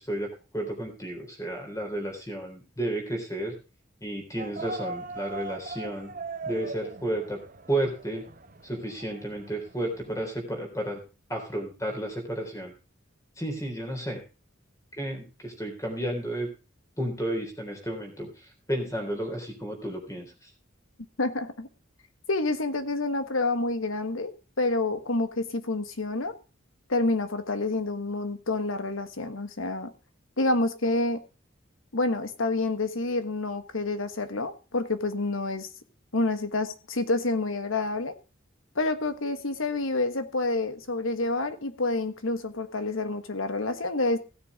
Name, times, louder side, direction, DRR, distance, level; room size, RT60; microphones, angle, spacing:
voice 1, 0.0-3.5 4.0-6.1 6.5-7.4 7.7-8.2 8.6-11.0 11.3-12.7 13.4-14.2 14.9-16.5 17.0-20.5, right 1 dB, 15° left, 3 dB, 3.7 m, -32 dB
sound 1, 4.4-10.2, right 3 dB, 40° right, 1.1 m, -40 dB
voice 2, 21.2-21.7 22.3-26.3 26.9-29.9 30.4-31.2 31.9-35.7 36.1-38.1 38.7-44.2, left 2 dB, 90° left, 10 dB, 1.4 m, -28 dB
16.5 x 7.0 x 5.0 m, 0.33 s
head